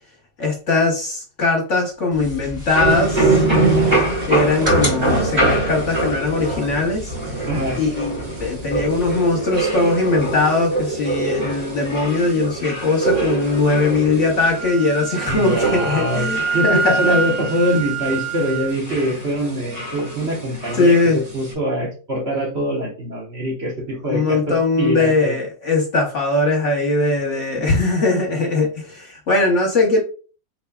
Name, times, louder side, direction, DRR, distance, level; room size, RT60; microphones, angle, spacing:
voice 1, 0.4-3.4 4.3-7.1 7.7-17.1 20.8-21.2 24.1-30.0, left 3 dB, 55° left, 0 dB, 1.0 m, -20 dB
sound 1, 2.1-9.1, left 2 dB, 5° right, 1.5 m, -34 dB
sound 2, 2.7-21.5, right 2 dB, 85° right, 3.0 m, -24 dB
voice 2, 7.5-7.8 15.3-25.4, equal, 40° right, -3 dB, 1.4 m, -23 dB
Wind instrument woodwind instrument, 14.6-18.7, right 4 dB, 65° right, 1.1 m, -25 dB
4.5 x 3.4 x 2.2 m, 0.37 s
omnidirectional pair, 1.8 m